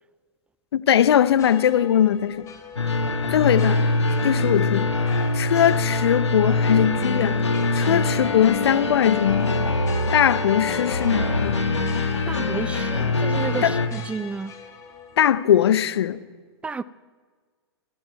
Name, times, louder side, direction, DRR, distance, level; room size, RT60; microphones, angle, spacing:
voice 1, 0.7-2.5 3.3-3.8 4.2-4.9 5.3-7.4 7.7-9.5 10.1-11.6 13.6-13.8 15.2-16.2, left 10 dB, 65° left, 0.8 m, -20 dB
sound 1, 1.3-15.5, left 7 dB, 20° left, 2.7 m, -42 dB
sound 2, 2.8-13.9, left 2 dB, 90° left, 1.7 m, -23 dB
voice 2, 12.3-14.5 16.6-16.8, right 4 dB, 10° right, 0.4 m, -31 dB
19.0 x 12.0 x 4.7 m
hypercardioid pair, 115°, 14 cm